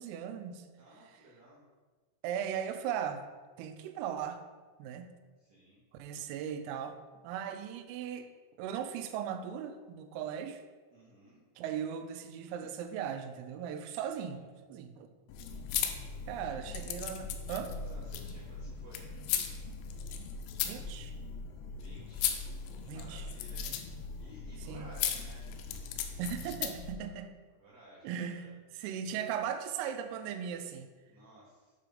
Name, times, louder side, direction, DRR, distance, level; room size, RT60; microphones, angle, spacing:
voice 1, 0.0-0.7 2.2-3.3 3.6-4.4 4.8-5.1 5.9-8.3 8.6-10.6 11.6-14.4 14.7-15.1 16.3-17.7 20.7-21.1 22.9-23.3 24.7-24.9 26.2-27.3 28.0-28.5 28.7-30.9, right 8 dB, 90° right, 8 dB, 3.2 m, -38 dB
voice 2, 0.8-1.6 5.4-5.8 10.9-11.4 14.2-14.4 16.0-16.6 17.7-19.1 21.7-25.5 27.6-28.5 31.1-31.7, right 1 dB, 70° right, -9 dB, 1.6 m, -56 dB
sound 1, 15.3-26.9, left 7 dB, 90° left, 2.6 m, -38 dB
8.7 x 3.8 x 5.1 m, 1.4 s
omnidirectional pair, 5.9 m